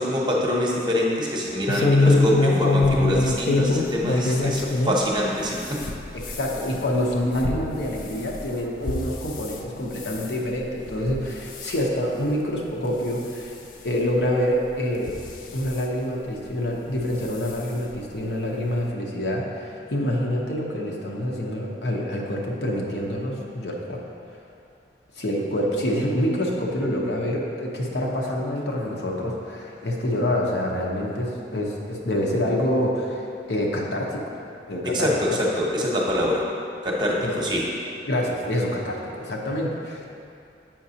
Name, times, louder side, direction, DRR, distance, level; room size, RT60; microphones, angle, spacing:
voice 1, 0.0-5.9 34.8-36.5 36.8-37.7, left 1 dB, 25° right, -3 dB, 0.8 m, -24 dB
voice 2, 1.7-2.0 4.4-4.5 6.3-13.5 13.8-15.1 15.5-24.0 25.2-34.3 34.7-35.1 37.2-37.3 38.1-40.1, equal, 75° left, -2 dB, 0.9 m, -26 dB
sound 1, 1.7-5.0 5.4-9.6 10.0-10.3 10.9-11.2 11.5-11.8 12.4-12.5 12.9-13.0 14.1-14.2 15.0-15.8 16.9-17.1 17.5-17.6 17.9-18.0, left 2 dB, 45° left, 0.4 m, -24 dB
7.3 x 5.8 x 2.8 m, 2.6 s
head